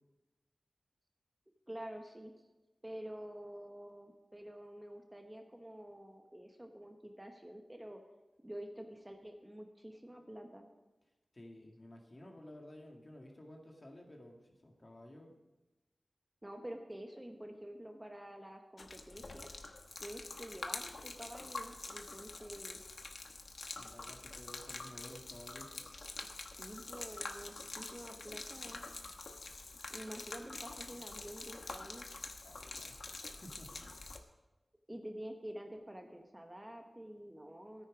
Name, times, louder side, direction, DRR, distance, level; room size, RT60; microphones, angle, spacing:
voice 1, 1.7-2.3 2.8-8.0 8.4-10.7 16.4-19.5 20.0-22.8 26.3-28.8 29.9-32.1 34.9-37.9, right 1 dB, 15° right, 4 dB, 1.1 m, -48 dB
voice 2, 11.3-15.3 23.2-25.8 32.4-33.0 33.3-33.9, left 1 dB, 40° left, 1 dB, 2.1 m, -54 dB
Gurgling / Liquid, 18.8-34.2, left 3 dB, 65° left, 1.0 m, -46 dB
13.5 x 9.5 x 5.0 m, 1.1 s
wide cardioid pair, 90°, 0 cm